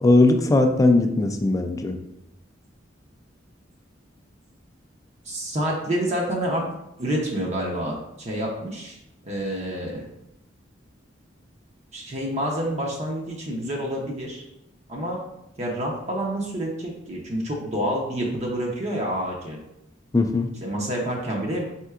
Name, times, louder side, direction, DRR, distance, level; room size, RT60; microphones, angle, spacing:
voice 1, 0.0-2.0 20.1-20.5, left 2 dB, 20° left, 5 dB, 0.3 m, -19 dB
voice 2, 5.3-6.6 7.0-9.0 9.2-10.0 11.9-14.4 14.9-15.2 15.6-19.6 20.6-21.6, right 1 dB, 40° right, -2 dB, 0.6 m, -28 dB
4.3 x 3.7 x 2.4 m, 0.86 s
head